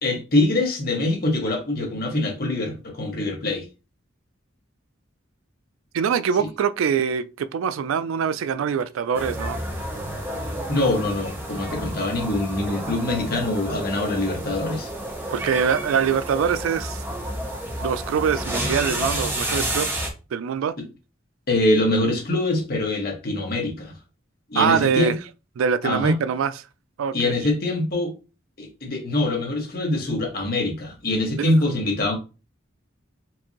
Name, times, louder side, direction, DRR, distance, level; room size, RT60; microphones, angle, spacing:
voice 1, 0.0-3.6 10.7-14.9 21.5-23.9 24.5-25.1 25.8-26.2 27.1-28.1 28.6-32.2, left 2 dB, 50° left, 1.3 m, -24 dB
voice 2, 5.9-9.6 15.3-17.0 17.8-20.0 20.3-20.8 24.5-25.1 25.6-26.5 27.0-27.3 31.4-31.5, right 7 dB, 85° right, 0.3 m, -23 dB
sound 1, 9.1-20.1, right 1 dB, 10° right, 0.8 m, -30 dB
4.5 x 2.6 x 2.9 m
head